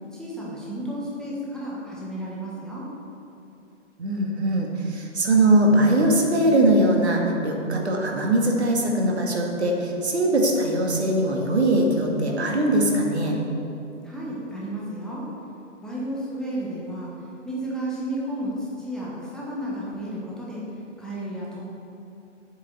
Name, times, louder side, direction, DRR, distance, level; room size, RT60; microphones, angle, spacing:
voice 1, 0.1-2.9 14.0-15.3 15.8-17.1 17.4-20.7 21.0-21.6, right 1 dB, ahead, -7 dB, 1.3 m, -32 dB
voice 2, 4.0-13.4, right 1 dB, 65° right, 0 dB, 2.1 m, -21 dB
8.2 x 6.8 x 7.8 m, 2.8 s
figure-of-eight pair, 125°, 36 cm